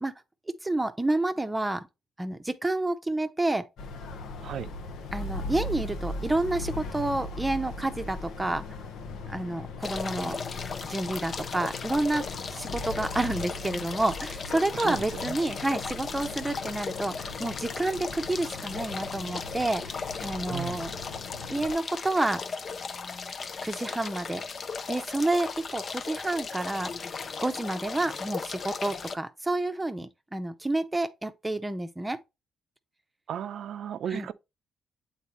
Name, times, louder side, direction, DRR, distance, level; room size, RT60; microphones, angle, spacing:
voice 1, 0.6-1.9 2.2-3.7 5.1-8.6 9.3-10.4 10.8-19.8 20.2-20.9 21.5-22.4 23.6-24.4 24.9-26.9 27.4-32.2 34.1-34.3, right 2 dB, 10° right, 0.7 m, -29 dB
sound 1, 3.8-21.7, left 2 dB, 80° left, 0.8 m, -39 dB
sound 2, 9.8-29.2, left 5 dB, 45° left, 0.6 m, -37 dB
voice 2, 14.8-15.4 20.5-20.8 33.3-34.3, right 9 dB, 65° right, 0.5 m, -35 dB
8.2 x 4.0 x 2.9 m
cardioid pair, 90°, 0 cm